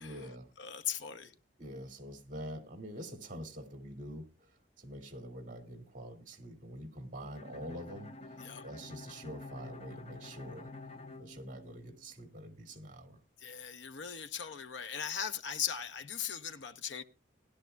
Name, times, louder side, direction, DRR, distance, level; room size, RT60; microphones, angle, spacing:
voice 1, 0.0-0.5 1.1-1.2 1.6-10.7 11.2-13.2, equal, 45° right, 2.3 m, -46 dB
voice 2, 0.6-1.3 8.4-8.6 13.4-17.0, left 8 dB, 75° left, 0.8 m, -39 dB
Bowed string instrument, 7.3-12.2, left 3 dB, 35° left, 0.8 m, -49 dB
19.5 x 11.5 x 2.3 m
head